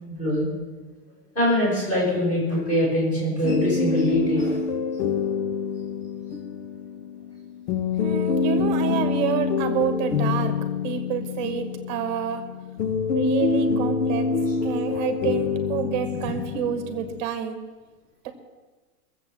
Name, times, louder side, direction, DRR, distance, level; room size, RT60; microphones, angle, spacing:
voice 1, 0.1-0.5 1.4-4.6, left 1 dB, 15° left, -5 dB, 5.6 m, -23 dB
sound 1, 3.4-17.2, left 5 dB, 85° left, 1.3 m, -26 dB
voice 2, 8.0-10.5 10.8-12.4 13.1-14.3 14.6-17.6 18.2-18.3, right 9 dB, 30° right, 7 dB, 1.2 m, -28 dB
19.5 x 7.8 x 7.5 m, 1.3 s
supercardioid pair, 180°, 46 cm